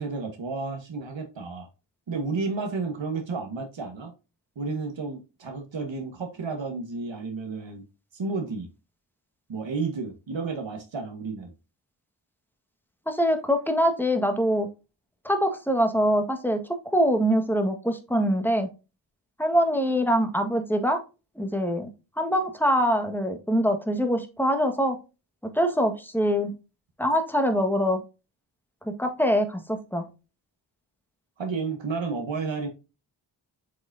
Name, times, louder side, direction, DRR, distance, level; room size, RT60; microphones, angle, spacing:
voice 1, 0.0-1.7 2.1-4.1 4.5-7.8 8.1-8.7 9.5-11.5 31.4-32.7, right 4 dB, 80° right, 1.5 m, -31 dB
voice 2, 13.1-14.7 15.2-18.7 19.4-21.0 21.3-25.0 25.4-26.5 27.0-28.0 28.8-30.1, equal, 5° left, 1.5 m, -24 dB
8.1 x 4.9 x 2.7 m
wide cardioid pair, 80°, 44 cm